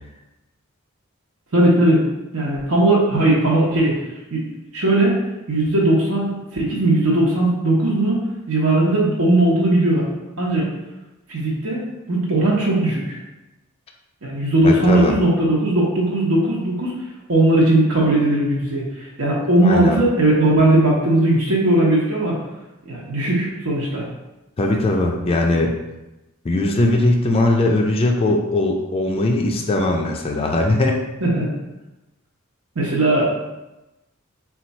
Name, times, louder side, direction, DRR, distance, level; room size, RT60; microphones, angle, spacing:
voice 1, 1.5-2.0 2.3-4.0 4.3-4.4 4.7-10.1 10.4-10.7 11.3-13.2 14.2-17.0 17.3-22.4 22.9-24.0 31.2-31.5 32.8-33.3, right 1 dB, 70° right, -5 dB, 0.9 m, -18 dB
voice 2, 14.6-15.2 19.6-20.0 24.6-25.8 26.4-31.0, left 2 dB, 25° left, 1 dB, 0.3 m, -19 dB
4.4 x 2.3 x 4.0 m, 1.0 s
head